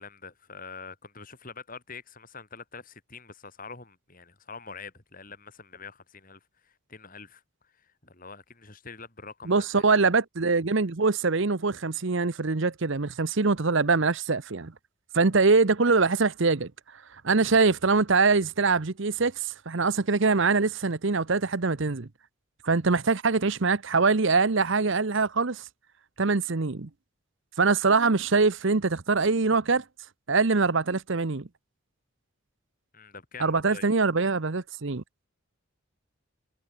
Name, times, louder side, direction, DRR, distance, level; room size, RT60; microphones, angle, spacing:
voice 1, 0.0-9.8 32.9-33.9, left 4 dB, 40° left, 4.3 m, -45 dB
voice 2, 9.5-14.7 15.1-16.7 17.2-22.1 22.6-25.6 26.2-26.9 27.6-29.8 30.3-31.5 33.4-35.0, right 4 dB, 60° right, 0.8 m, -23 dB
head